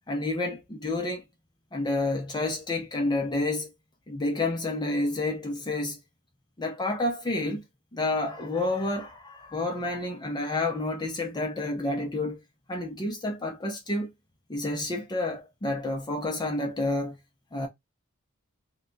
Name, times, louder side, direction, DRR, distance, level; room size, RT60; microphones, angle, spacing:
voice 1, 0.1-1.2 1.7-3.7 4.1-6.0 6.6-7.6 7.9-12.4 12.7-14.1 14.5-17.2 17.5-17.7, left 2 dB, 20° left, 0.5 m, -29 dB
2.8 x 2.2 x 3.8 m
head